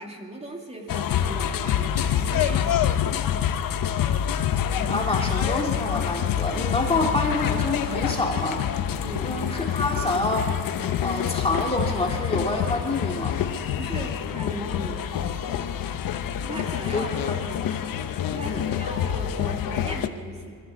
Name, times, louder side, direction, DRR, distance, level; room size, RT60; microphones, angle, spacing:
voice 1, 0.0-2.9 9.0-9.5 13.7-15.1 16.4-17.2 18.3-20.6, right 1 dB, 15° right, 0 dB, 2.6 m, -37 dB
sound 1, 0.9-20.1, left 9 dB, 65° left, 1.0 m, -27 dB
voice 2, 4.8-8.6 9.2-10.5 11.0-13.4 16.9-17.6 18.4-18.6, left 2 dB, 15° left, 0 dB, 2.2 m, -27 dB
23.0 x 14.5 x 8.4 m, 2.2 s
cardioid pair, 135°, 36 cm